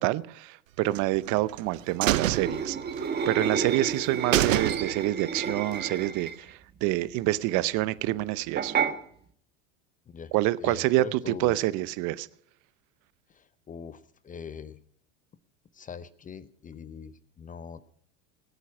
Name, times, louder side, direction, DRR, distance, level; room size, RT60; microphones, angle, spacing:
voice 1, 0.0-2.8 3.3-8.7 10.3-12.3, right 17 dB, 50° right, 18 dB, 0.7 m, -27 dB
sound 1, 0.9-1.6 2.0-3.3 3.6-3.7 4.0-4.1 4.3-5.2 5.6-5.7, right 14 dB, 90° right, 0.6 m, -27 dB
sound 2, 2.3-6.5 8.6-8.9, right 6 dB, 25° right, 1.4 m, -30 dB
voice 2, 10.6-11.6 13.7-14.0 14.2-14.8 15.8-17.8, left 6 dB, 20° left, 16 dB, 0.7 m, -41 dB
19.0 x 8.3 x 6.0 m, 0.63 s
hypercardioid pair, 95°, 38 cm